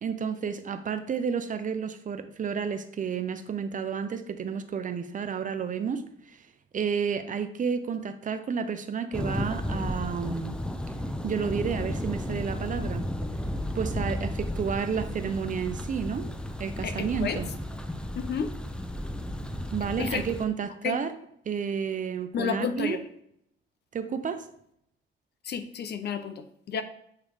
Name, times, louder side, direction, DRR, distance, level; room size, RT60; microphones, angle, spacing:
voice 1, 0.0-6.4 6.7-10.6 11.2-13.1 13.7-16.3 16.6-17.5 19.7-21.1 21.5-23.0 23.9-24.5, right 6 dB, 40° right, 10 dB, 0.6 m, -31 dB
Thunder, 9.1-20.5, left 1 dB, 5° left, 0.5 m, -33 dB
voice 2, 16.8-17.4 18.2-18.5 20.0-20.2 20.8-21.0 22.3-23.0 25.4-26.8, left 7 dB, 55° left, 10 dB, 0.6 m, -31 dB
8.5 x 3.2 x 3.5 m, 0.71 s
cardioid pair, 90°, 20 cm